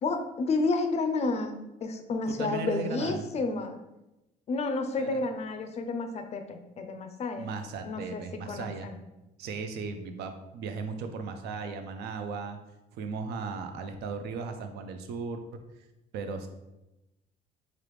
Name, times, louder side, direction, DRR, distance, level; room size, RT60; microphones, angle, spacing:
voice 1, 0.0-1.6 1.8-3.8 4.5-7.5 7.8-9.0, left 3 dB, 40° left, 7 dB, 0.4 m, -31 dB
voice 2, 2.3-3.2 5.0-5.2 7.4-8.9 9.4-12.6 13.0-15.4 16.1-16.5, right 4 dB, 75° right, 7 dB, 0.4 m, -36 dB
3.3 x 2.4 x 3.1 m, 0.96 s
cardioid pair, 110°, 17 cm